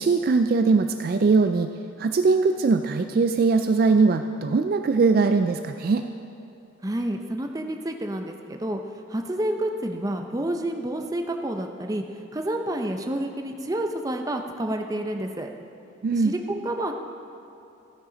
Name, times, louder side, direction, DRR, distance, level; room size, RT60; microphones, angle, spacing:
voice 1, 0.0-1.7 2.0-6.1 16.0-16.3, right 4 dB, 50° right, 7 dB, 0.3 m, -21 dB
voice 2, 6.8-8.8 9.1-12.0 12.3-15.5 16.1-16.9, right 1 dB, 20° right, 4 dB, 0.6 m, -29 dB
15.0 x 9.9 x 3.9 m, 2.9 s
head